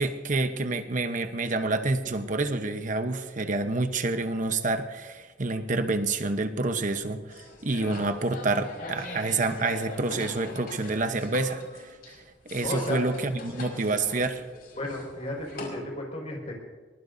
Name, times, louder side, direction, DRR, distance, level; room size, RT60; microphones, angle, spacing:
voice 1, 0.0-12.2 12.5-14.4, right 3 dB, 45° right, 8 dB, 0.9 m, -28 dB
sound 1, 7.3-15.7, left 2 dB, 55° left, 5.3 m, -42 dB
voice 2, 12.6-13.2 14.7-16.5, left 1 dB, 35° left, -1 dB, 5.4 m, -33 dB
23.0 x 21.0 x 2.7 m, 1.4 s
head